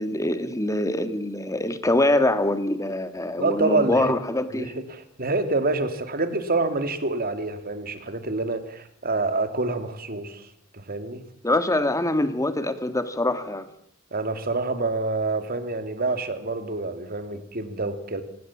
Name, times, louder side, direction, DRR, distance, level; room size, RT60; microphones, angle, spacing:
voice 1, 0.0-4.8 11.4-13.7, left 1 dB, 15° left, 10 dB, 1.8 m, -24 dB
voice 2, 3.4-4.1 4.5-10.5 10.7-11.2 14.1-18.2, right 3 dB, 45° right, 9 dB, 2.8 m, -27 dB
26.0 x 19.0 x 7.3 m, 0.68 s
head